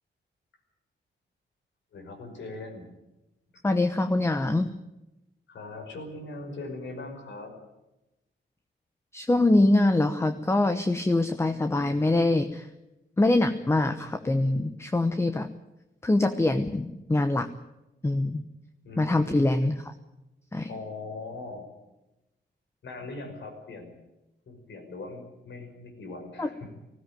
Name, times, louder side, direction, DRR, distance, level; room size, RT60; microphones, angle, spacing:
voice 1, 1.9-2.9 5.5-7.5 18.8-19.6 20.7-21.7 22.8-24.0 24.5-26.7, left 2 dB, 70° left, 4 dB, 5.8 m, -40 dB
voice 2, 3.6-4.7 9.1-12.7 13.2-15.5 16.0-17.5 18.0-18.4 19.0-19.9 20.5-20.7 26.4-26.5, left 2 dB, 15° left, 9 dB, 0.9 m, -24 dB
19.5 x 16.0 x 9.1 m, 0.96 s
wide cardioid pair, 140°, 20 cm